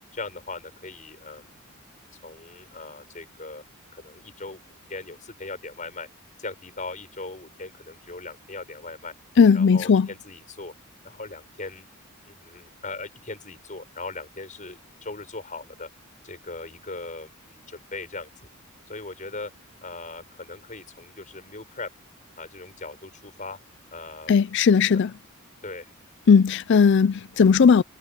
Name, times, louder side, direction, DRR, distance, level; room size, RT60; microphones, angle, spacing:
voice 1, 0.1-1.5 2.1-3.6 3.9-6.1 6.4-9.1 9.5-10.7 11.0-11.9 12.3-15.9 16.2-18.3 18.9-19.5 19.8-21.9 22.4-23.6 23.9-24.4 25.6-25.9, left 3 dB, 35° left, 5.8 m, -39 dB
voice 2, 9.4-10.1 24.3-25.1 26.3-27.8, left 6 dB, 55° left, 0.4 m, -17 dB
head